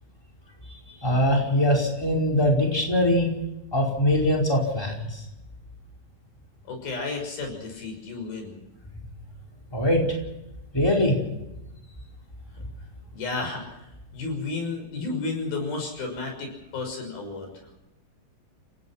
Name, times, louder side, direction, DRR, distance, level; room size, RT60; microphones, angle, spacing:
voice 1, 0.6-3.4 3.7-5.2 9.7-10.2 10.7-11.2, left 1 dB, 5° left, 0 dB, 4.7 m, -22 dB
voice 2, 6.7-8.6 13.1-13.8 14.1-17.5, left 3 dB, 80° left, 3 dB, 8.0 m, -32 dB
29.5 x 17.5 x 6.0 m, 0.93 s
omnidirectional pair, 4.1 m